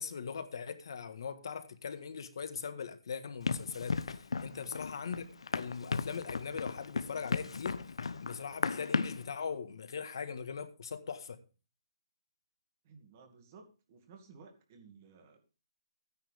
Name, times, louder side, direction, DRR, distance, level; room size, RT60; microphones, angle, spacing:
voice 1, 0.0-7.8 8.2-11.4, left 6 dB, 55° left, 1.6 m, -40 dB
Run, 3.5-9.3, left 5 dB, 85° left, 0.9 m, -35 dB
voice 2, 12.8-15.4, right 5 dB, 30° right, 2.2 m, -57 dB
13.5 x 9.9 x 3.5 m
hypercardioid pair, 170°, 3 cm